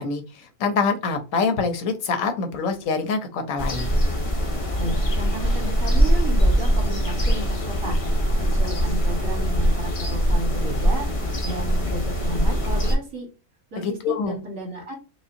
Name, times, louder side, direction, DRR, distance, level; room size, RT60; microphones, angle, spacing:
voice 1, 0.0-3.9 13.8-14.3, left 4 dB, 80° left, 6 dB, 1.1 m, -25 dB
sound 1, 3.6-13.0, equal, 40° left, 0.5 m, -22 dB
voice 2, 4.8-8.0 8.4-11.1 11.4-13.3 13.7-15.0, right 1 dB, 70° right, 0 dB, 1.9 m, -33 dB
4.9 x 2.2 x 2.6 m, 0.33 s
omnidirectional pair, 1.4 m